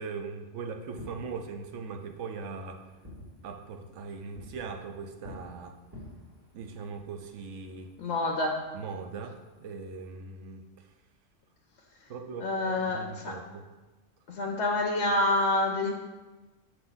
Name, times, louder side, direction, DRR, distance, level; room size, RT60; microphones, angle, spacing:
voice 1, 0.0-2.9 3.4-5.8 6.5-7.9 8.7-10.9 12.1-13.7, right 5 dB, 75° right, 6 dB, 1.0 m, -40 dB
Fireworks, 0.8-10.1, left 1 dB, 15° right, 2.1 m, -52 dB
voice 2, 8.0-8.6 12.4-13.4 14.3-15.9, left 2 dB, 65° left, 0 dB, 1.0 m, -27 dB
6.6 x 5.8 x 3.9 m, 1.2 s
omnidirectional pair, 1.3 m